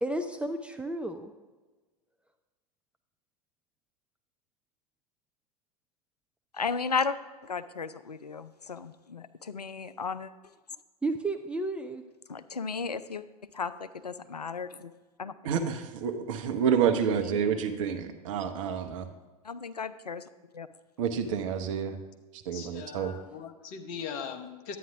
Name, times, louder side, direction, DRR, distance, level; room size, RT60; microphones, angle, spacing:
voice 1, 0.0-1.3 11.0-12.0 16.8-17.7, right 2 dB, 5° right, 6 dB, 0.4 m, -33 dB
voice 2, 6.5-7.2 7.4-10.3 12.3-13.2 13.5-14.9 15.2-15.3 19.4-20.2 20.5-20.7, left 5 dB, 90° left, 13 dB, 0.4 m, -34 dB
voice 3, 15.4-19.1 21.0-22.0 22.3-23.1, right 7 dB, 55° right, 6 dB, 1.0 m, -29 dB
voice 4, 22.5-24.8, left 6 dB, 45° left, 5 dB, 1.2 m, -40 dB
11.0 x 9.3 x 3.5 m, 1.2 s
figure-of-eight pair, 85°, 20 cm